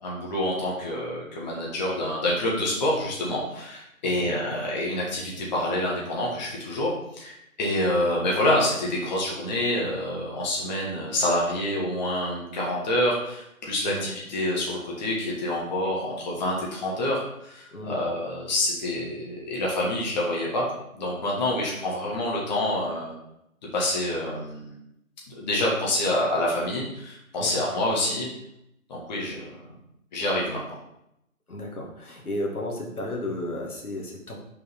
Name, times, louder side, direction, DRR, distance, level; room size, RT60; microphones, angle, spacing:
voice 1, 0.0-20.7 20.9-23.1 23.7-24.7 25.3-28.3 28.9-29.6 30.1-30.6, left 1 dB, 30° left, -3 dB, 1.8 m, -27 dB
voice 2, 4.0-4.3 13.8-14.1 17.7-18.0 27.4-27.6 31.5-34.4, left 1 dB, 85° left, -1 dB, 2.2 m, -33 dB
5.6 x 4.8 x 5.5 m, 0.80 s
figure-of-eight pair, 155°, 43 cm